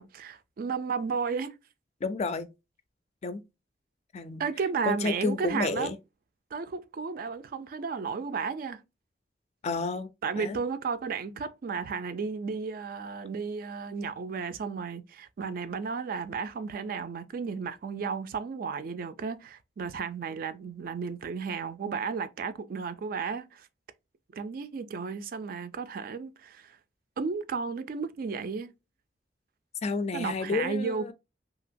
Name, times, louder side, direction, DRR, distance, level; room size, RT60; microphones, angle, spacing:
voice 1, 0.0-1.6 4.4-5.9 6.5-8.8 10.2-23.7 24.3-26.7 27.2-28.7 30.1-31.1, right 5 dB, 55° right, 0.3 m, -33 dB
voice 2, 2.0-2.5 3.2-3.4 4.1-4.4 4.9-6.0 9.6-10.1 10.4-10.6 29.8-31.1, left 3 dB, 40° left, 0.4 m, -30 dB
2.9 x 2.8 x 2.5 m
head